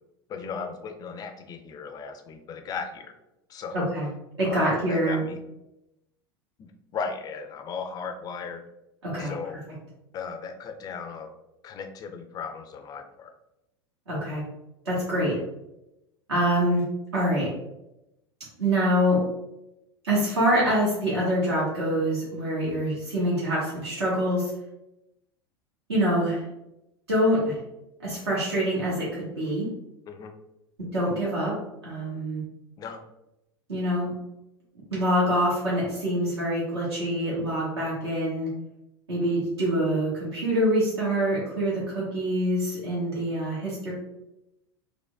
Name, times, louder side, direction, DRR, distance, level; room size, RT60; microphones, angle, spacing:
voice 1, 0.3-3.1 3.5-3.9 4.4-5.4 6.6-8.6 9.2-9.6 10.1-11.3 11.6-13.3 15.2-15.5 30.1-30.3 32.8-33.0, left 5 dB, 30° left, 6 dB, 0.4 m, -36 dB
voice 2, 3.7-4.1 4.4-5.2 9.0-9.3 14.1-14.4 14.8-15.3 16.3-16.8 17.1-17.5 18.6-19.2 20.0-24.5 25.9-26.4 27.1-27.6 28.0-29.7 30.9-32.4 33.7-34.1 34.9-38.5 39.1-43.9, equal, 75° right, -7 dB, 1.3 m, -25 dB
4.4 x 2.2 x 2.3 m, 0.89 s
figure-of-eight pair, 85°, 14 cm